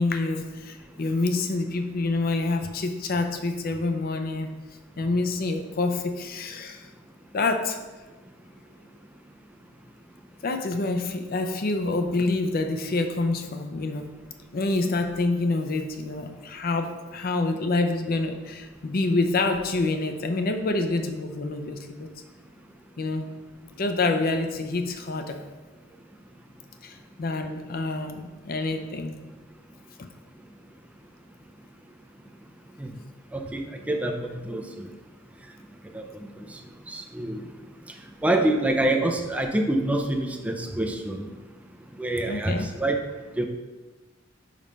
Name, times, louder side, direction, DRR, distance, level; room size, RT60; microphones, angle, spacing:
voice 1, 0.0-4.5 5.0-6.9 7.3-7.8 10.4-14.1 14.5-22.1 23.0-23.3 23.6-25.4 26.8-29.2 42.3-42.7, left 3 dB, 50° left, 6 dB, 0.5 m, -27 dB
voice 2, 33.9-34.9 35.9-36.0 36.9-37.4 38.2-41.3 42.0-42.5 42.8-43.0 43.4-43.5, right 1 dB, 5° right, 3 dB, 0.5 m, -26 dB
5.2 x 4.3 x 5.2 m, 1.2 s
head